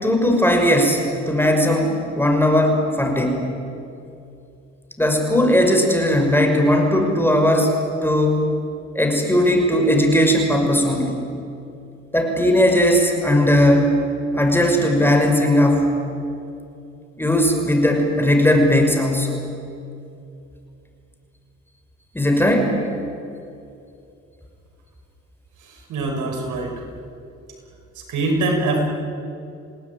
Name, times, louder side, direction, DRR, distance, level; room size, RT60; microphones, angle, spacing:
voice 1, 0.0-3.5 5.0-7.7 8.0-8.4 8.9-11.2 12.1-14.0 14.4-16.0 17.2-19.4 22.1-22.7, equal, 5° left, 3 dB, 5.8 m, -18 dB
voice 2, 25.6-26.7 28.0-28.8, right 2 dB, 80° right, 2 dB, 6.0 m, -23 dB
27.5 x 18.5 x 9.7 m, 2.6 s
cardioid pair, 90°, 30 cm